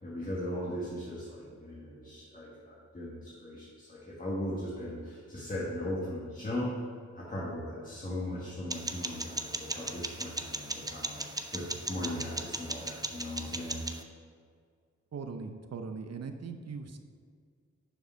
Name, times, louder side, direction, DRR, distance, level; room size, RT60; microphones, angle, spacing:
voice 1, 0.0-6.7 7.1-13.8, left 1 dB, 25° left, -7 dB, 1.6 m, -38 dB
sound 1, 8.7-14.0, right 2 dB, 15° right, 0.5 m, -37 dB
voice 2, 15.1-17.0, right 5 dB, 60° right, 7 dB, 0.7 m, -40 dB
6.8 x 4.8 x 5.6 m, 2.1 s
cardioid pair, 60°, 30 cm